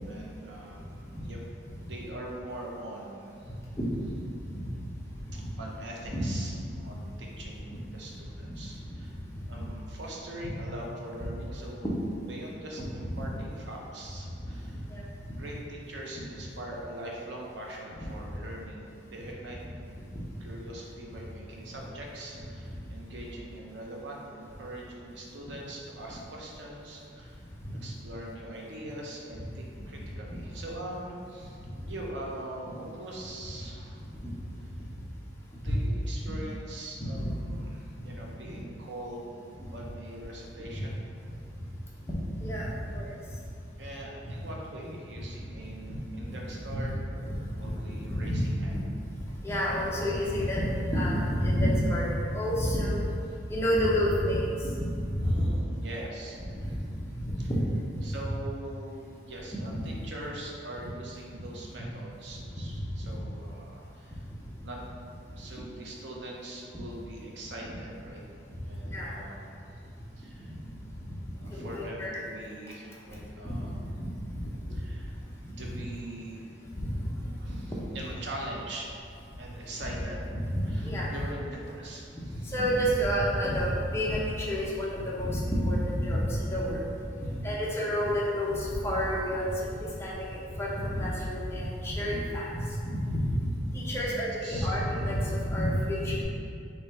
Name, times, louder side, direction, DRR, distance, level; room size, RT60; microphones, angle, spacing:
voice 1, 0.1-1.4 1.8-3.5 5.3-9.2 9.5-14.8 15.3-19.6 20.4-27.4 27.8-34.1 35.5-39.4 39.7-41.0 43.8-48.7 55.2-56.7 57.4-57.5 58.0-64.3 64.6-64.8 65.3-68.2 68.6-69.8 70.2-70.5 71.1-73.8 74.7-75.2 75.6-76.4 77.4-78.9 79.4-80.2 80.6-82.5 84.5-84.6 87.2-87.7 93.9-94.7, right 1 dB, 85° right, -2 dB, 0.8 m, -43 dB
voice 2, 37.0-37.3 42.4-43.1 46.6-46.8 47.6-47.7 48.2-48.4 48.7-48.8 49.4-53.1 53.5-54.4 54.8-54.9 55.2-55.4 57.2-57.3 57.9-58.0 59.7-59.9 63.0-63.1 68.9-69.1 71.5-72.2 73.4-73.5 74.3-74.4 76.7-76.9 77.5-77.6 80.3-81.1 82.5-86.8 87.4-89.5 90.0-92.5 92.9-93.2 93.7-96.2, equal, 15° left, -5 dB, 0.7 m, -29 dB
3.9 x 2.9 x 4.2 m, 2.4 s
head